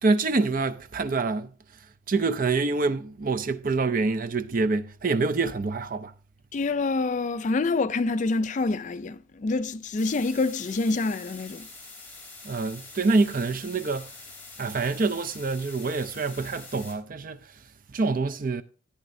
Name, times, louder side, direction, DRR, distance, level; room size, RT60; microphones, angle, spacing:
voice 1, 0.0-1.5 2.1-6.1 12.4-14.1 14.6-17.4 17.9-18.6, right 3 dB, 45° right, 0.5 m, -26 dB
voice 2, 6.5-11.7, left 3 dB, 40° left, 0.4 m, -26 dB
sound 1, 10.0-16.9, left 3 dB, 10° left, 3.1 m, -45 dB
14.0 x 9.3 x 2.6 m
head